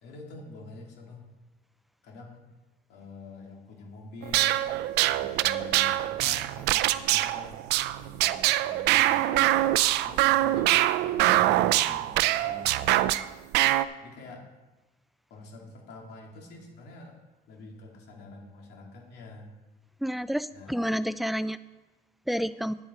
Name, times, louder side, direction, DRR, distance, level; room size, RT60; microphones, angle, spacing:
voice 1, 0.0-1.3 2.0-2.5 2.9-4.7 5.1-9.6 10.0-10.7 11.0-13.2 14.0-14.4 15.3-17.2 17.5-19.5 20.5-20.8, left 3 dB, 80° left, 0 dB, 2.6 m, -46 dB
sound 1, 4.2-13.3 13.5-13.8, right 15 dB, 85° right, 0.4 m, -24 dB
voice 2, 20.0-21.6 22.3-22.7, equal, ahead, 15 dB, 0.3 m, -29 dB
9.8 x 8.6 x 4.3 m, 1.1 s
cardioid pair, 110°, 17 cm